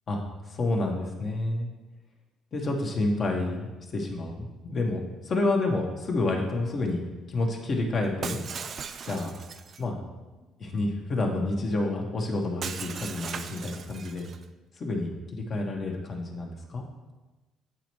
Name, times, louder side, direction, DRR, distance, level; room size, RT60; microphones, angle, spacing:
voice 1, 0.5-1.7 2.5-7.0 7.3-8.4 9.0-9.3 9.8-9.9 10.6-14.2 14.8-16.8, left 2 dB, 45° left, 1 dB, 1.3 m, -29 dB
Shatter, 8.2-9.8 12.6-14.4, right 6 dB, 50° right, 0.4 m, -38 dB
8.9 x 4.2 x 3.1 m, 1.2 s
cardioid pair, 90°, 0 cm